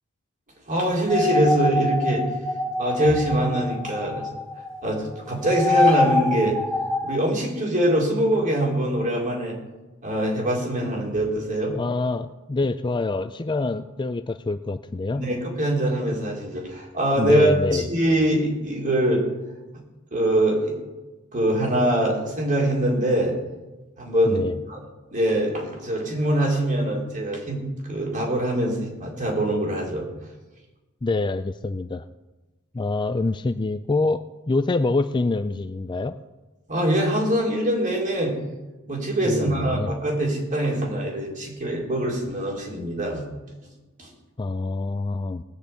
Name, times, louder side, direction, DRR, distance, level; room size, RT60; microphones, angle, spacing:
voice 1, 0.7-2.2 2.8-4.3 4.8-6.6 7.0-9.6 10.0-11.8 15.1-19.2 20.1-20.7 21.3-23.3 24.0-24.4 24.7-24.8 25.1-27.6 27.9-30.1 36.7-38.4 38.9-43.2 44.0-44.1, right 1 dB, 35° right, -2 dB, 3.9 m, -23 dB
sound 1, 1.1-4.9 5.2-7.2, left 2 dB, 5° left, 1.2 m, -25 dB
voice 2, 11.7-15.3 17.2-17.9 24.3-24.6 31.0-32.1 32.7-36.2 39.3-39.9 44.4-45.4, left 3 dB, 20° left, 11 dB, 0.4 m, -25 dB
19.5 x 6.9 x 8.4 m, 1.1 s
head